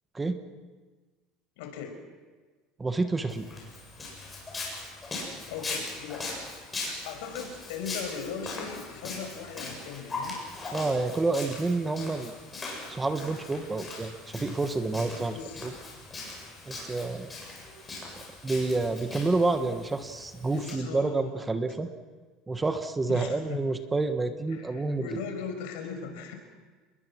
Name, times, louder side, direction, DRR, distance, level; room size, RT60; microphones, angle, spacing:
voice 1, 1.6-2.0 5.5-6.4 6.8-10.4 15.1-15.7 20.5-21.5 23.1-23.6 24.5-26.3, left 6 dB, 85° left, 5 dB, 5.6 m, -39 dB
voice 2, 2.8-3.5 10.7-12.3 12.9-15.3 15.6-15.7 16.7-17.4 18.4-21.9 22.5-25.1, right 3 dB, 10° right, 8 dB, 1.3 m, -29 dB
Walk footsteps, 3.3-20.7, left 3 dB, 15° left, 7.9 m, -40 dB
29.0 x 21.5 x 6.3 m, 1.4 s
cardioid pair, 155°, 0 cm